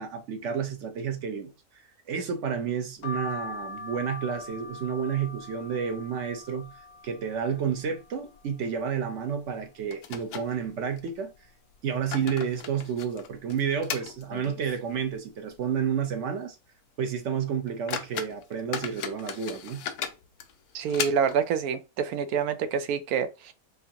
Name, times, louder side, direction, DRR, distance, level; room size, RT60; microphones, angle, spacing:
voice 1, 0.0-1.5 2.1-6.7 7.0-11.3 11.8-16.6 17.0-19.9, right 7 dB, 60° right, 0.9 m, -30 dB
sound 1, 3.0-8.7 9.2-9.9 10.3-10.4 10.6-11.7 12.2-12.6 13.3-13.7 14.4-14.7 15.0-15.2, left 3 dB, 60° left, 0.8 m, -42 dB
sound 2, 3.2-4.1 4.5-4.6 4.9-5.0 5.6-6.1 6.4-6.5 7.2-7.3 7.6-7.8 9.2-9.3 9.9-11.1 11.8-15.0 15.3-15.4 15.9-16.1 16.5-16.7 17.2-17.3 17.7-21.6, left 8 dB, 90° left, 1.1 m, -38 dB
voice 2, 20.7-23.5, right 7 dB, 80° right, 1.1 m, -27 dB
4.6 x 2.5 x 2.8 m
omnidirectional pair, 1.6 m